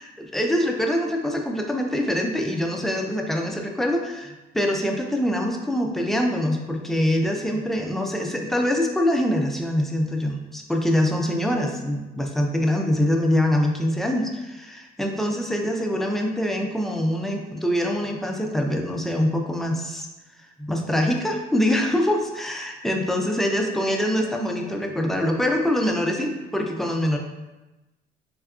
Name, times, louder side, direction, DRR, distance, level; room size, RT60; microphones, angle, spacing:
voice 1, 0.3-20.1 20.6-27.2, left 1 dB, ahead, 1 dB, 0.3 m, -24 dB
3.5 x 2.2 x 2.3 m, 1.1 s
cardioid pair, 110°, 17 cm